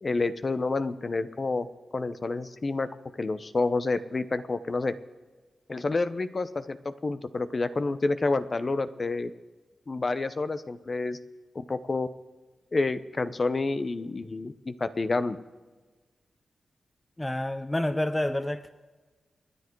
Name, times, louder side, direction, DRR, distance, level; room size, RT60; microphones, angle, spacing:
voice 1, 0.0-1.7 1.9-2.9 3.2-4.9 5.7-9.3 9.9-11.2 11.7-12.1 12.7-15.4, left 3 dB, 40° left, 12 dB, 0.9 m, -29 dB
voice 2, 17.2-18.7, left 1 dB, 10° left, 11 dB, 0.7 m, -28 dB
28.5 x 10.5 x 4.7 m, 1.3 s
wide cardioid pair, 105°, 0 cm